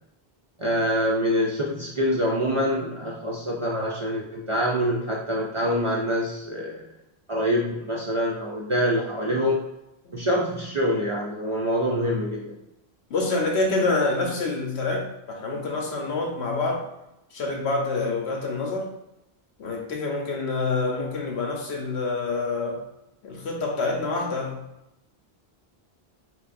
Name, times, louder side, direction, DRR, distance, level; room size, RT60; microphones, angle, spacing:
voice 1, 0.6-6.8 7.3-9.6 10.1-12.5, equal, 50° right, -3 dB, 0.4 m, -25 dB
voice 2, 13.1-16.8 17.3-18.9 19.6-22.8 23.2-24.6, left 3 dB, 90° left, 0 dB, 1.1 m, -27 dB
3.4 x 3.2 x 2.5 m, 0.90 s
omnidirectional pair, 1.1 m